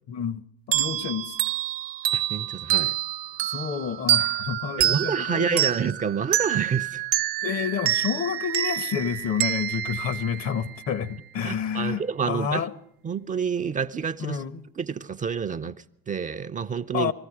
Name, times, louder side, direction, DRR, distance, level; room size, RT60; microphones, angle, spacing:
voice 1, 0.1-0.4 0.7-1.4 3.4-5.6 7.4-12.7 14.2-14.7 16.9-17.1, left 7 dB, 50° left, 1.1 m, -29 dB
sound 1, 0.7-11.0, right 13 dB, 70° right, 0.9 m, -27 dB
voice 2, 2.1-3.0 4.8-7.1 11.4-12.7 13.0-14.4 14.8-17.1, right 6 dB, 25° right, 0.6 m, -28 dB
20.5 x 14.5 x 4.8 m
hypercardioid pair, 75°, 30 cm